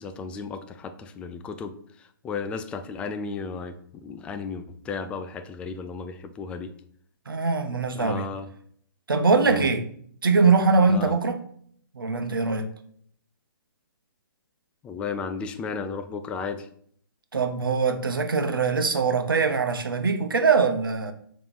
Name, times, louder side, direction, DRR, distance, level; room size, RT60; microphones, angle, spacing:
voice 1, 0.0-6.7 7.9-8.5 9.5-9.7 10.9-11.1 14.8-16.7, left 5 dB, 10° left, 0.3 m, -34 dB
voice 2, 7.3-8.3 9.1-9.8 10.2-11.4 11.9-12.7 17.3-21.1, right 4 dB, 70° right, 0.9 m, -22 dB
6.8 x 3.1 x 5.3 m
figure-of-eight pair, 130°, 12 cm